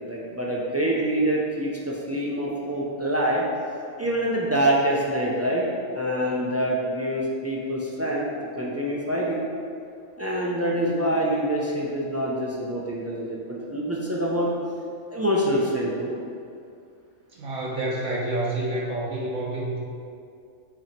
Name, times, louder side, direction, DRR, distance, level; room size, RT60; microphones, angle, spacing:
voice 1, 0.0-3.4 4.0-5.6 5.9-8.3 8.6-9.4 10.2-14.5 15.1-16.1, right 1 dB, 25° right, -5 dB, 0.3 m, -25 dB
voice 2, 17.3-19.8, right 1 dB, 65° right, -6 dB, 1.3 m, -28 dB
8.3 x 3.0 x 4.4 m, 2.3 s
omnidirectional pair, 1.5 m